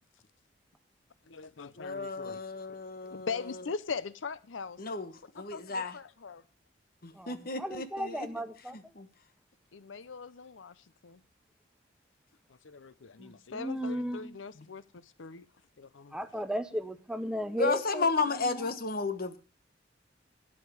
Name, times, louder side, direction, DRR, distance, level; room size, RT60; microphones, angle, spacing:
voice 1, 1.3-2.4 3.1-4.8 5.5-6.4 9.7-11.2 12.6-15.4 15.8-16.1, left 5 dB, 80° left, 0.7 m, -41 dB
voice 2, 1.8-3.3 4.8-5.9 7.0-8.3 8.9-9.1 14.6-14.7 17.6-19.4, left 4 dB, 50° left, 1.3 m, -33 dB
voice 3, 7.1-8.8 13.2-14.4 16.1-18.1 18.4-18.6, equal, 5° right, 0.8 m, -35 dB
12.5 x 10.0 x 4.8 m
head